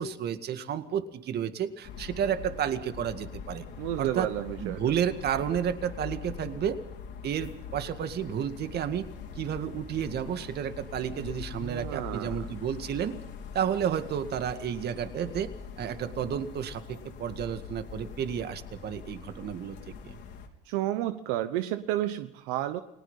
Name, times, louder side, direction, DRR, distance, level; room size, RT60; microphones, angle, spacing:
voice 1, 0.0-3.7 4.0-4.3 4.6-6.8 7.2-9.0 9.4-13.1 13.5-15.5 15.8-19.8 20.0-20.2, right 9 dB, 55° right, 10 dB, 2.0 m, -31 dB
sound 1, 1.8-20.5, left 6 dB, 70° left, 3.7 m, -43 dB
voice 2, 3.8-4.8 11.6-12.4 20.7-22.8, right 13 dB, 85° right, 11 dB, 1.0 m, -31 dB
29.5 x 19.0 x 5.7 m, 0.79 s
supercardioid pair, 105°, 20 cm